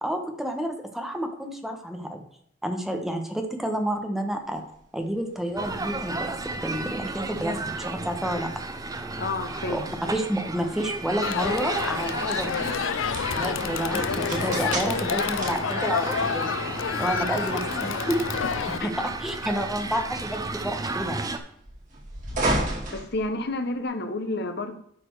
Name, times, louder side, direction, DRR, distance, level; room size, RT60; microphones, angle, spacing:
voice 1, 0.0-2.2 2.6-4.6 4.9-6.3 6.6-8.5 9.5-9.8 10.1-12.7 13.3-16.5 17.0-18.2 19.0-21.2, equal, ahead, 4 dB, 1.2 m, -30 dB
sound 1, 4.5-23.9, right 1 dB, 45° right, 3.0 m, -37 dB
sound 2, 5.6-21.4, right 2 dB, 20° right, 0.7 m, -33 dB
voice 2, 9.2-9.9 18.8-19.1 22.3-22.5 22.9-24.8, left 2 dB, 60° left, 8 dB, 1.0 m, -30 dB
Crowd, 11.2-18.8, left 7 dB, 85° left, 0.5 m, -29 dB
12.0 x 4.4 x 4.7 m, 0.70 s
head